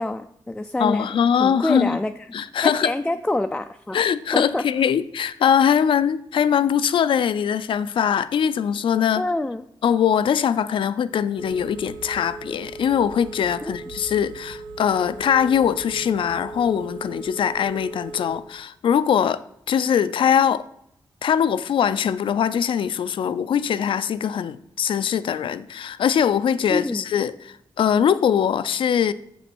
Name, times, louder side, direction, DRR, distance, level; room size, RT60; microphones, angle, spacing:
voice 1, 0.0-1.1 1.4-2.1 2.6-4.1 4.3-4.6 9.2-9.6 13.6-13.8 26.7-27.0, left 2 dB, 10° left, 0.3 m, -26 dB
voice 2, 0.8-2.0 2.3-2.9 3.9-9.2 9.8-19.4 19.7-20.6 21.2-29.1, left 8 dB, 80° left, 0.5 m, -22 dB
Telephone, 11.4-18.4, right 3 dB, 85° right, 1.1 m, -38 dB
7.4 x 7.0 x 6.1 m
wide cardioid pair, 140°, 9 cm